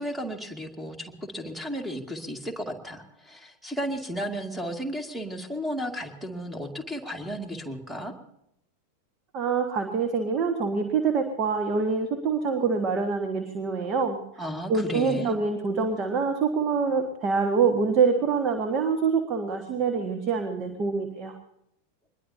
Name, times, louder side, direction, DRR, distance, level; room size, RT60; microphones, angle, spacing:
voice 1, 0.0-8.1 14.4-15.4, equal, 5° right, 5 dB, 2.3 m, -34 dB
voice 2, 9.3-14.2 14.7-21.4, right 5 dB, 35° right, 6 dB, 1.7 m, -25 dB
24.0 x 21.0 x 2.9 m, 0.78 s
figure-of-eight pair, 90°, 0 cm